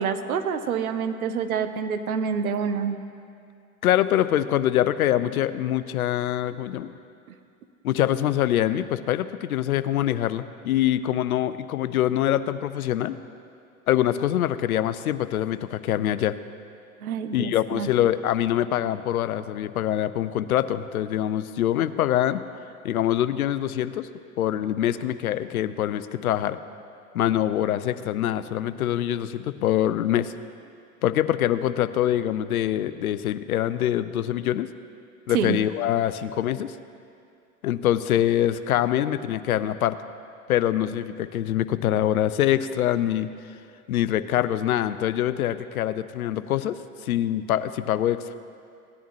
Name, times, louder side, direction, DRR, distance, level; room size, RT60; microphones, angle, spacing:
voice 1, 0.0-3.0 17.0-17.9 35.3-35.6, right 6 dB, 80° right, 9 dB, 0.8 m, -27 dB
voice 2, 3.8-6.9 7.8-13.2 13.9-16.4 17.3-22.4 22.8-24.1 24.4-26.6 27.1-30.3 31.0-34.7 35.3-36.7 37.6-40.0 40.5-43.3 43.9-48.2, left 12 dB, 85° left, 13 dB, 0.5 m, -24 dB
17.5 x 10.0 x 3.0 m, 2.4 s
hypercardioid pair, 90°, 43 cm